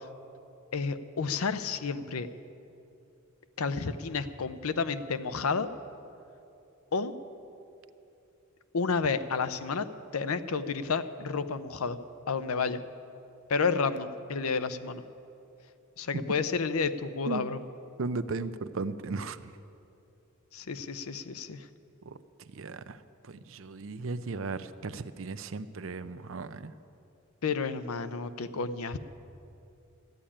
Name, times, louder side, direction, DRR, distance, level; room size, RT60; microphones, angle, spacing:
voice 1, 0.7-2.3 3.6-5.7 6.9-7.1 8.7-9.9 10.1-12.0 12.3-12.8 13.5-15.0 16.0-17.6 20.5-21.6 27.4-29.0, left 5 dB, 90° left, 12 dB, 0.7 m, -30 dB
voice 2, 18.0-19.6 22.0-22.2 22.5-26.7, right 3 dB, 65° right, 13 dB, 0.5 m, -36 dB
13.5 x 8.7 x 9.9 m, 2.7 s
head